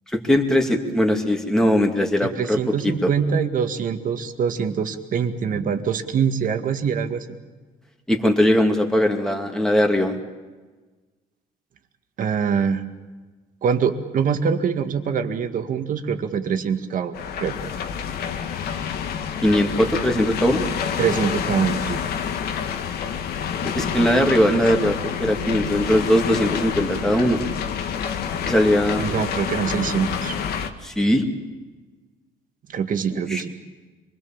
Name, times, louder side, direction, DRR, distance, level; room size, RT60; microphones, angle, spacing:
voice 1, 0.1-2.6 2.8-2.9 8.1-10.2 19.4-20.6 23.6-27.4 28.5-29.0 30.8-31.3 33.1-33.4, equal, 5° left, 2 dB, 2.6 m, -20 dB
voice 2, 2.2-7.3 12.2-12.8 13.6-17.6 21.0-22.0 29.0-30.4 32.7-33.6, right 6 dB, 50° right, 7 dB, 2.0 m, -24 dB
sound 1, 17.1-30.7, left 7 dB, 70° left, 1.7 m, -28 dB
26.0 x 21.0 x 7.3 m, 1.3 s
cardioid pair, 110°, 17 cm